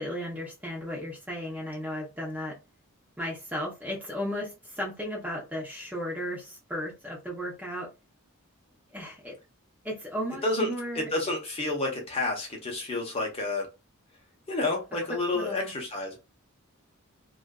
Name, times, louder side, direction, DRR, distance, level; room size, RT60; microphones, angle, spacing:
voice 1, 0.0-2.6 3.2-7.9 8.9-9.3 9.8-11.1 15.3-15.7, equal, 5° right, 0.7 m, -35 dB
voice 2, 10.9-13.7 14.5-16.2, left 2 dB, 25° left, 0.7 m, -29 dB
2.5 x 2.3 x 2.2 m
head